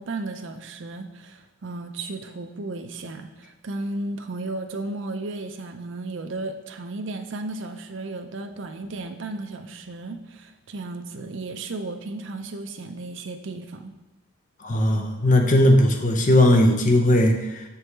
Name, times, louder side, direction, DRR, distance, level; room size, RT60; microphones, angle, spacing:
voice 1, 0.0-13.9, right 2 dB, 60° right, 7 dB, 0.5 m, -34 dB
voice 2, 14.6-17.6, left 1 dB, 40° left, 3 dB, 0.6 m, -18 dB
6.8 x 4.7 x 3.3 m, 1.0 s
head